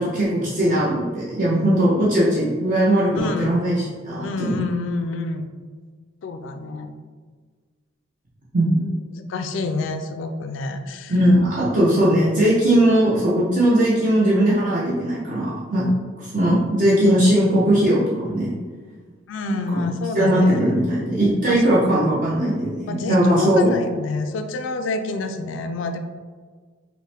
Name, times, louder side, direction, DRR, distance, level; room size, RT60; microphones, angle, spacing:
voice 1, 0.0-4.6 8.5-8.9 11.1-15.9 16.2-18.6 19.5-19.8 20.1-23.7, right 1 dB, 45° right, -7 dB, 0.7 m, -19 dB
voice 2, 3.2-3.7 4.1-5.5 6.2-6.9 9.1-11.1 19.3-20.6 21.5-22.1 22.9-26.0, left 3 dB, 80° left, 7 dB, 0.3 m, -28 dB
5.3 x 2.1 x 3.3 m, 1.5 s
head